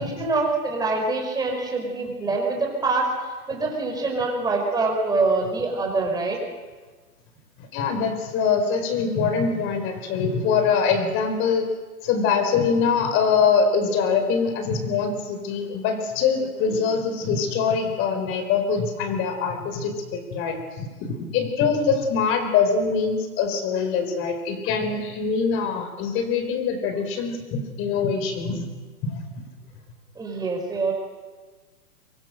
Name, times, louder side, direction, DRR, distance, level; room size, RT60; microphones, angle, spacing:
voice 1, 0.0-6.4 30.2-30.9, right 3 dB, 10° right, 1 dB, 5.4 m, -25 dB
voice 2, 7.6-11.7 12.0-28.7 29.0-29.2, left 5 dB, 25° left, 7 dB, 4.6 m, -23 dB
25.0 x 22.0 x 6.6 m, 1.4 s
hypercardioid pair, 145°, 46 cm